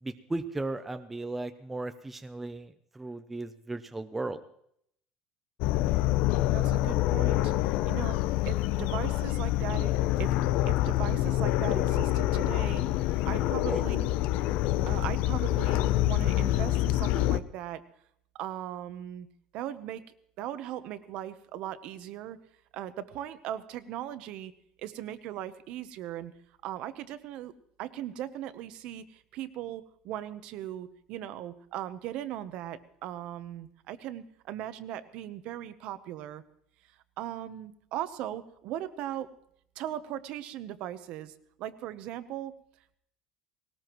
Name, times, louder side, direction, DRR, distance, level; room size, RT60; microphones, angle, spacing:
voice 1, 0.0-4.4 13.7-13.8, right 2 dB, 5° right, 8 dB, 0.5 m, -36 dB
sound 1, 5.6-17.4, left 15 dB, 55° left, 0.5 m, -26 dB
voice 2, 6.5-9.9 10.2-10.3 10.7-14.1 14.9-17.8 18.3-19.3 19.5-20.0 20.4-22.4 22.7-24.5 24.8-26.3 26.6-27.5 27.8-36.4 37.2-39.3 39.8-41.3 41.6-42.5, right 12 dB, 45° right, 13 dB, 0.8 m, -38 dB
19.5 x 18.5 x 3.0 m, 0.70 s
cardioid pair, 175°, 2 cm